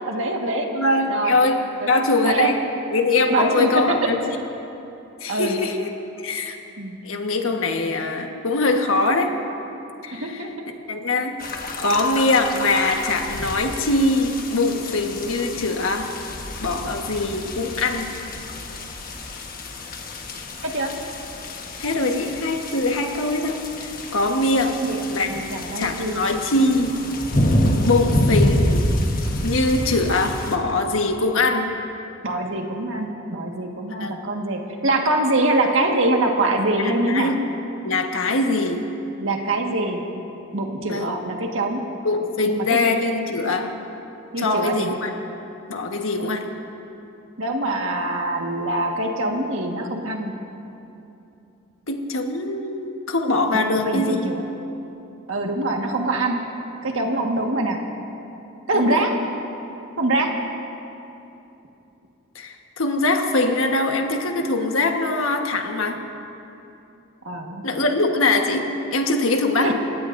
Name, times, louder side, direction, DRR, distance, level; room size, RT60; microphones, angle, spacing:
voice 1, 0.1-0.7 1.1-1.4 1.8-1.9 2.2-2.5 3.3-3.7 5.3-5.6 6.8-7.0 10.2-10.5 20.6-20.9 24.6-26.2 32.2-37.3 39.2-40.1 40.5-41.8 42.5-42.6 44.3-44.9 46.2-46.3 47.4-50.3 53.5-54.4 55.3-56.4 56.8-57.8 58.7-59.1 60.0-60.3 67.2-67.6 69.6-69.7, right 2 dB, 65° right, 1 dB, 1.7 m, -24 dB
voice 2, 0.7-2.6 2.9-4.2 5.2-5.9 6.2-6.6 7.0-9.4 10.0-10.4 10.9-11.4 11.8-16.1 16.6-18.1 21.8-24.8 25.1-25.4 25.7-26.9 27.8-28.8 29.4-31.7 34.0-34.2 36.8-37.4 37.8-38.8 40.8-41.1 42.0-43.7 44.4-45.1 45.7-46.4 51.9-54.3 58.7-59.0 62.3-66.0 67.6-69.7, left 2 dB, 70° left, 3 dB, 1.4 m, -22 dB
sound 1, 11.4-30.6, left 1 dB, 40° left, 1.3 m, -27 dB
29.5 x 16.5 x 2.7 m, 2.9 s
head